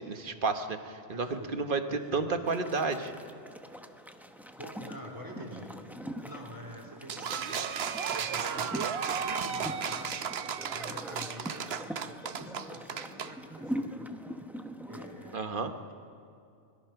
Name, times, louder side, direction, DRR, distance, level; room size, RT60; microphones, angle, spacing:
voice 1, 0.0-3.1 15.3-15.7, right 4 dB, 50° right, 7 dB, 1.3 m, -31 dB
voice 2, 1.1-1.6 1.9-2.3 4.6-5.7 6.0-7.7 8.2-8.9 9.2-10.3 10.5-11.7 12.0-14.1 14.9-15.6, equal, 20° right, 1 dB, 3.4 m, -46 dB
sound 1, 2.5-15.4, equal, ahead, 0.9 m, -43 dB
sound 2, 7.1-13.3, right 7 dB, 70° right, 1.0 m, -34 dB
24.5 x 21.5 x 5.8 m, 2.5 s
omnidirectional pair, 1.1 m